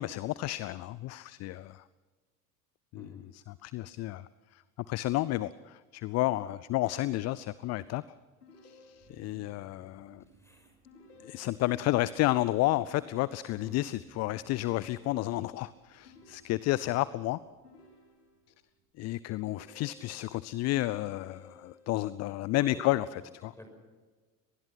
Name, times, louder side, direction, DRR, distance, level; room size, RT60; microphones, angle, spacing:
voice 1, 0.0-1.8 2.9-4.6 4.9-8.0 8.6-10.2 11.2-17.4 19.0-23.5, left 17 dB, 35° left, 19 dB, 0.6 m, -31 dB
Car / Idling / Accelerating revving vroom, 8.1-18.9, right 5 dB, 35° right, 3.2 m, -62 dB
sound 1, 8.4-9.4 10.8-11.9 13.0-14.0 16.0-17.1 17.6-18.6 19.5-20.5 21.1-22.1, left 3 dB, 80° left, 3.3 m, -57 dB
voice 2, 10.4-10.7 13.6-13.9 22.7-22.8 23.2-23.3 23.6-23.7, equal, 5° left, 4 dB, 6.3 m, -50 dB
24.0 x 20.0 x 5.9 m, 1.4 s
figure-of-eight pair, 65°, 46 cm